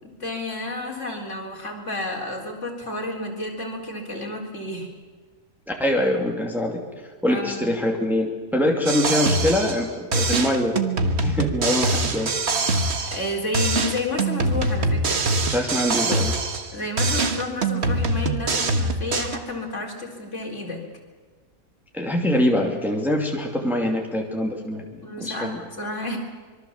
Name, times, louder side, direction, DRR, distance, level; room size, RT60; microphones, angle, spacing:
voice 1, 0.0-4.9 7.3-7.6 13.1-15.2 16.7-20.8 25.0-26.2, left 2 dB, 50° left, 0 dB, 4.4 m, -31 dB
voice 2, 5.7-6.8 7.2-10.8 11.2-12.3 15.5-16.3 21.9-24.8 25.2-25.6, left 1 dB, ahead, 0 dB, 2.6 m, -23 dB
sound 1, 8.9-9.9 10.1-13.3 13.5-16.7 17.0-19.4, right 2 dB, 45° right, 1.6 m, -23 dB
25.5 x 23.0 x 7.4 m, 1.5 s
omnidirectional pair, 1.6 m